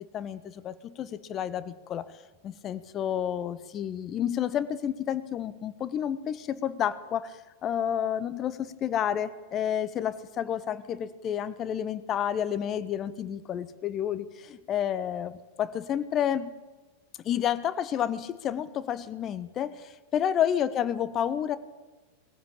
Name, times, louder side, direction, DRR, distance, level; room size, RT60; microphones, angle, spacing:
voice 1, 0.0-2.1 2.4-7.3 7.6-16.5 17.2-21.6, left 9 dB, 30° left, 14 dB, 1.2 m, -30 dB
20.5 x 15.0 x 8.7 m, 1.3 s
figure-of-eight pair, 90°, 0 cm